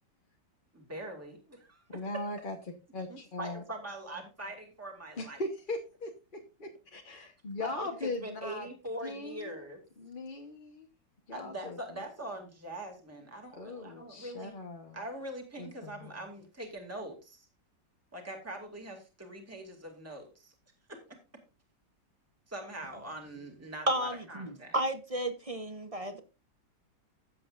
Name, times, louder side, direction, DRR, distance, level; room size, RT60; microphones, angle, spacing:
voice 1, 0.7-2.0 3.1-5.4 7.1-7.3 7.6-9.8 11.3-14.6 14.9-17.5 18.1-20.5 20.9-21.0 22.5-24.8, right 1 dB, 10° right, 2.3 m, -43 dB
voice 2, 1.9-2.6 2.9-3.6 5.2-8.7 9.0-9.6 10.0-10.9 11.3-11.8 13.6-15.0 15.6-16.1, left 2 dB, 35° left, 1.1 m, -39 dB
voice 3, 23.9-26.2, right 1 dB, 30° right, 0.6 m, -32 dB
16.0 x 7.8 x 2.5 m
omnidirectional pair, 1.9 m